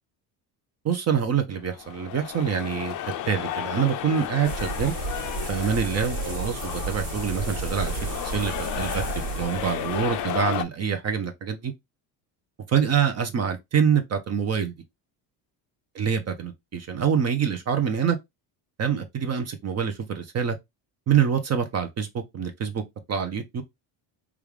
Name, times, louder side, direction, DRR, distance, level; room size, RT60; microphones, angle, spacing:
voice 1, 0.8-2.9 3.3-4.9 5.5-11.7 12.7-14.7 15.9-18.2 18.8-20.6 21.1-22.8 23.1-23.6, right 7 dB, 35° right, 0.6 m, -26 dB
sound 1, 1.7-10.6, left 11 dB, 45° left, 0.4 m, -33 dB
sound 2, 4.4-10.4, right 4 dB, 65° right, 1.7 m, -33 dB
3.4 x 2.4 x 3.2 m
cardioid pair, 115°, 44 cm